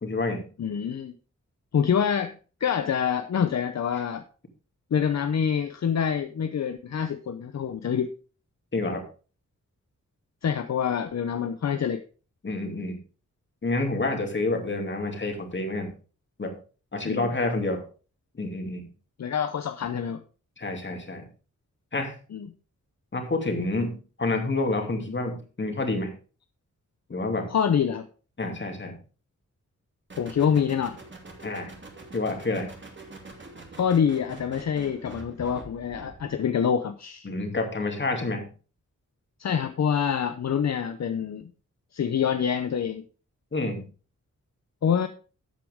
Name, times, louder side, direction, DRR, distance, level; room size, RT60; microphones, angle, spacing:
voice 1, 0.0-0.4 8.7-9.0 12.4-13.0 13.6-15.9 16.4-16.5 16.9-17.8 18.3-18.9 20.6-21.2 21.9-22.2 23.1-26.1 27.1-27.5 28.4-29.0 31.4-31.7 32.1-32.7 37.2-38.5 43.5-43.8, left 2 dB, 40° left, 4 dB, 2.6 m, -28 dB
voice 2, 0.6-1.1 1.7-2.3 2.6-4.2 4.9-8.1 10.4-12.0 17.1-17.3 19.2-20.2 22.3-22.5 27.5-28.1 30.2-31.0 33.7-37.3 39.4-41.5 41.9-43.0 44.8-45.1, left 7 dB, 60° left, 9 dB, 0.8 m, -26 dB
sound 1, 30.1-36.4, right 3 dB, 40° right, 2.7 m, -45 dB
12.5 x 8.2 x 3.6 m, 0.36 s
wide cardioid pair, 125°, 30 cm